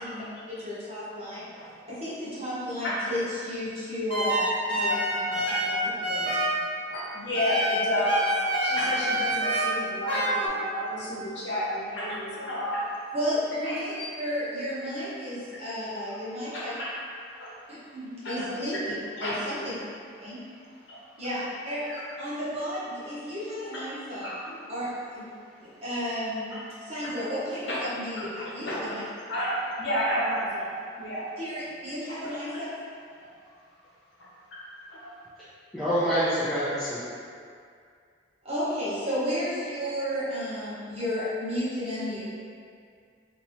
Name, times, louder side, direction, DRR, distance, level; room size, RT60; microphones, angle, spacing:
voice 1, 0.1-1.4 1.9-5.8 6.1-6.4 13.1-13.9 14.2-16.7 17.9-18.8 19.2-19.7 20.2-20.4 21.2-21.8 22.2-25.3 25.6-26.6 26.8-29.0 31.4-32.7 38.4-42.2, equal, 35° right, -11 dB, 1.1 m, -33 dB
sound 1, 4.1-6.6 7.3-9.7 10.1-10.5, equal, 25° left, 0.9 m, -27 dB
voice 2, 6.9-12.8 13.6-14.1 16.5-16.9 17.4-17.5 18.2-18.4 18.7-18.8 19.2-19.3 20.9-21.0 21.9-22.0 24.2-24.3 27.7-27.8 28.7-28.8 29.3-31.3 32.0-32.2 33.2-33.3 34.5-34.6 35.0-35.1, equal, 70° left, -7 dB, 0.9 m, -30 dB
voice 3, 35.7-37.0, equal, ahead, -14 dB, 0.5 m, -26 dB
3.3 x 3.0 x 2.8 m, 2.2 s
head